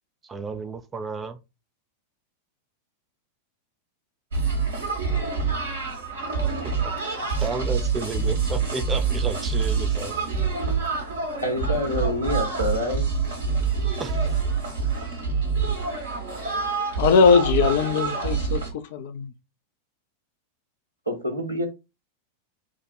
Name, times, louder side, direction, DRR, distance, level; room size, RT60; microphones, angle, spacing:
voice 1, 0.2-1.4 6.6-7.0 7.4-10.2 14.0-14.4, right 4 dB, 20° right, 0.5 m, -32 dB
sound 1, 4.3-18.7, right 5 dB, 70° right, 1.5 m, -26 dB
voice 2, 11.4-13.0 21.1-21.7, left 1 dB, 85° right, 1.4 m, -27 dB
voice 3, 17.0-19.3, left 5 dB, 55° left, 0.6 m, -20 dB
4.8 x 2.4 x 4.4 m
figure-of-eight pair, 90°, 0 cm